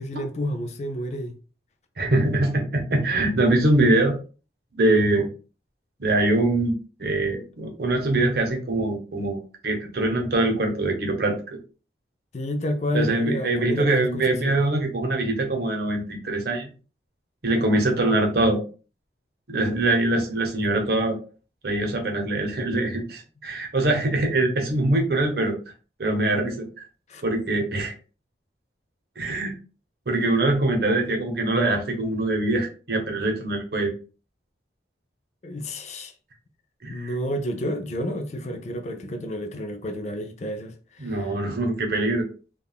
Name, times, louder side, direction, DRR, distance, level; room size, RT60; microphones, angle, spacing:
voice 1, 0.0-1.3 12.3-14.5 27.1-27.2 35.4-36.1 36.9-41.3, left 1 dB, 35° left, 0.4 m, -30 dB
voice 2, 2.0-4.2 4.8-5.3 6.0-9.4 9.6-11.4 12.9-16.7 17.4-18.6 19.5-21.2 21.6-25.6 26.0-26.7 27.2-27.9 29.2-29.5 30.1-33.9 36.8-37.2 41.0-42.3, right 2 dB, 55° right, 0.8 m, -23 dB
3.5 x 2.3 x 2.3 m
head